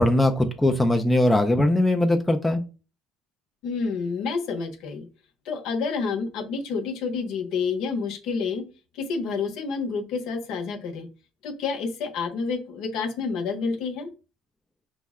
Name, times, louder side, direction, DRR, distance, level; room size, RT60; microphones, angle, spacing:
voice 1, 0.0-2.6, left 1 dB, 5° left, 3 dB, 0.4 m, -20 dB
voice 2, 3.6-5.1 5.4-8.7 8.9-11.1 11.4-14.1, left 5 dB, 60° left, 6 dB, 0.7 m, -29 dB
5.4 x 2.1 x 3.5 m, 0.33 s
cardioid pair, 155°, 0 cm